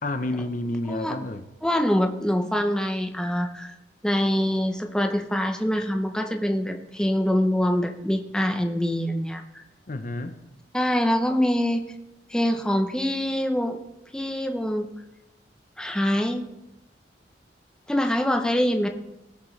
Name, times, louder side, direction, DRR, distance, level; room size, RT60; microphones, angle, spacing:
voice 1, 0.0-1.5 9.9-10.4, left 1 dB, 45° left, 0.7 m, -30 dB
voice 2, 1.6-3.7 4.0-9.6 10.7-11.9 12.3-13.8 14.1-14.9 15.8-16.4 17.9-18.9, equal, 5° left, 0.7 m, -24 dB
18.0 x 7.2 x 3.2 m
head